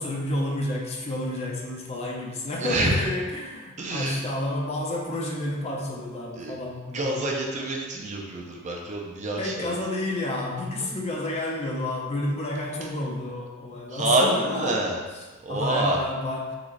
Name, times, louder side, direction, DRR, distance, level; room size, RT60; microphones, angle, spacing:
voice 1, 0.0-7.3 9.4-14.8 15.1-16.6, left 1 dB, 30° left, -1 dB, 0.6 m, -30 dB
voice 2, 2.6-2.9 3.8-4.2 6.4-6.5 6.9-9.7 13.9-15.0 15.4-16.0, right 2 dB, 35° right, -1 dB, 0.5 m, -26 dB
3.9 x 3.6 x 3.2 m, 1.3 s
head